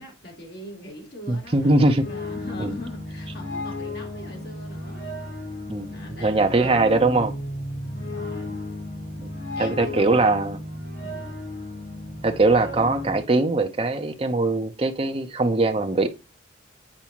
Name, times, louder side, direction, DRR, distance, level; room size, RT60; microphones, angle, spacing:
voice 1, 0.0-5.1 5.9-7.4 7.9-8.6 9.5-10.4 11.0-11.4, equal, 60° left, 3.2 m, -41 dB
voice 2, 1.3-2.1 2.6-2.8 5.7-7.3 9.2-9.3 9.6-10.6 12.2-16.2, right 2 dB, 30° right, 0.7 m, -21 dB
sound 1, 1.4-13.2, left 1 dB, 75° left, 4.4 m, -34 dB
8.7 x 4.7 x 2.9 m
head